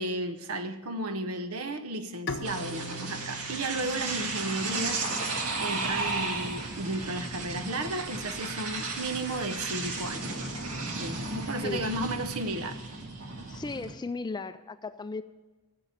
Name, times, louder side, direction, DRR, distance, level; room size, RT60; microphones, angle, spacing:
voice 1, 0.0-5.1 5.6-10.3 10.9-12.8, right 2 dB, 70° right, 10 dB, 0.9 m, -34 dB
Bowed string instrument, 2.3-5.5, left 3 dB, 55° left, 0.8 m, -41 dB
sound 1, 2.4-13.9, right 3 dB, 90° right, 1.8 m, -34 dB
sound 2, 5.8-13.4, equal, 30° right, 5.0 m, -53 dB
voice 2, 13.5-15.2, left 3 dB, 20° left, 12 dB, 0.4 m, -36 dB
14.0 x 6.8 x 7.5 m, 1.3 s
head